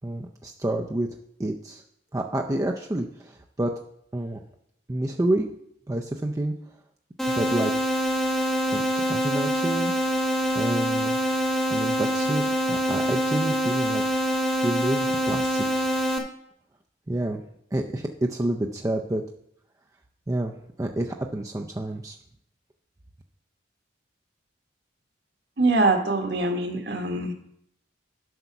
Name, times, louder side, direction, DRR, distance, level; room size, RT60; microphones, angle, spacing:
voice 1, 0.0-1.1 1.4-1.8 2.1-3.7 4.1-4.4 4.9-5.5 5.9-6.5 7.3-7.8 8.7-9.9 10.5-11.2 11.7-14.0 14.6-15.9 17.1-17.4 17.7-19.2 20.3-20.5 20.8-22.2, right 1 dB, 15° right, 2 dB, 0.4 m, -28 dB
sound 1, 7.2-16.2, equal, 5° left, 1.0 m, -25 dB
voice 2, 25.6-27.3, right 2 dB, 55° right, 4 dB, 1.2 m, -23 dB
7.9 x 5.6 x 5.9 m, 0.72 s
head